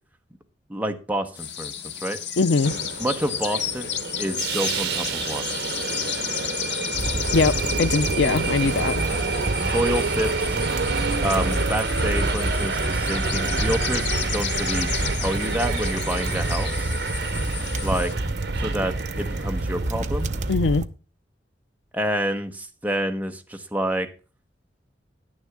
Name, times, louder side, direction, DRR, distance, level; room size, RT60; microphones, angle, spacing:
voice 1, 0.7-1.7 2.0-2.2 3.0-5.5 9.6-10.7 11.2-16.9 17.8-18.1 18.6-20.3 21.9-24.1, right 1 dB, 10° right, 1.1 m, -28 dB
sound 1, 1.3-18.1, left 9 dB, 70° left, 1.4 m, -33 dB
voice 2, 2.4-2.7 7.3-7.5 7.8-8.9 20.5-20.8, left 4 dB, 85° left, 0.5 m, -21 dB
Subway metro underground, 2.6-20.5, right 3 dB, 70° right, 1.4 m, -28 dB
sound 2, 6.9-20.9, right 2 dB, 40° right, 0.6 m, -29 dB
10.5 x 9.7 x 3.5 m
head